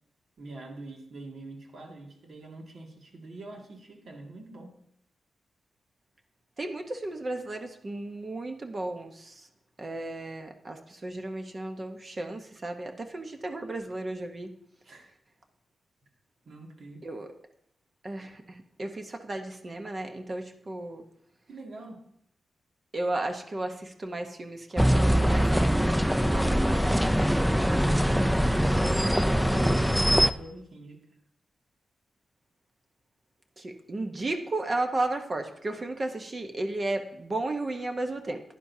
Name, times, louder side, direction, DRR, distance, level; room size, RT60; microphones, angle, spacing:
voice 1, 0.4-4.7 14.8-15.1 16.5-17.1 21.5-22.0 27.8-31.0, right 2 dB, 70° right, 0 dB, 2.2 m, -44 dB
voice 2, 6.6-9.5 9.8-14.5 17.0-17.3 18.0-21.0 22.9-26.5 33.6-38.4, right 2 dB, 40° right, 5 dB, 1.0 m, -34 dB
sound 1, 24.8-30.3, equal, ahead, 0.4 m, -23 dB
11.0 x 10.0 x 2.8 m, 0.71 s
cardioid pair, 70°, 0 cm